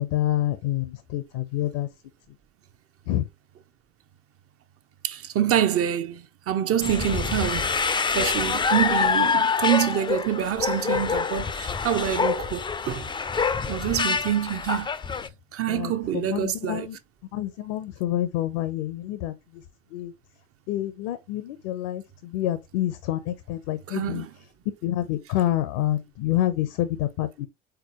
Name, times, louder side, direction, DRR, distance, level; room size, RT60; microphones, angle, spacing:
voice 1, 0.0-1.9 3.1-3.2 15.7-17.0 17.3-19.3 19.9-20.1 20.7-24.2 24.8-27.5, left 13 dB, 70° left, 0.7 m, -27 dB
voice 2, 5.0-7.8 8.1-13.1 13.6-14.9 15.5-16.9 23.9-24.3, right 10 dB, 45° right, 0.7 m, -26 dB
sound 1, 6.8-15.3, left 5 dB, 15° left, 0.4 m, -26 dB
4.6 x 3.8 x 2.9 m
hypercardioid pair, 65°, 33 cm